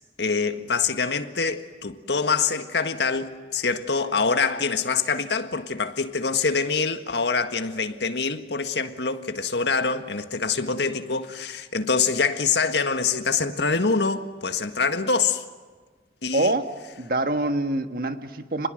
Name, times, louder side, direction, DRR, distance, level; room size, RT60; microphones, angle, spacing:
voice 1, 0.2-15.4 16.2-16.5, left 4 dB, 75° left, 1.7 m, -25 dB
voice 2, 16.3-18.7, right 2 dB, 55° right, 1.6 m, -25 dB
28.5 x 21.0 x 7.9 m
head